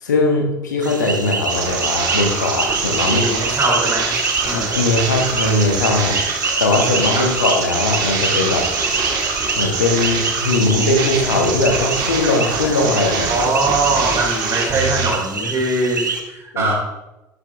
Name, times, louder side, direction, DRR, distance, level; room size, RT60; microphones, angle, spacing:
voice 1, 0.0-3.4 4.5-6.2 6.6-8.7 9.6-13.3 13.9-14.1 16.5-16.7, left 2 dB, 75° left, 3 dB, 1.4 m, -19 dB
sound 1, 0.8-16.2, right 4 dB, 85° right, 0.9 m, -26 dB
sound 2, 1.5-15.1, right 5 dB, 50° right, 1.6 m, -24 dB
voice 2, 3.1-4.1 4.4-4.7 7.1-7.2 13.3-16.7, right 2 dB, 25° right, -3 dB, 3.5 m, -21 dB
12.0 x 5.8 x 3.6 m, 0.96 s
figure-of-eight pair, 65°, 10 cm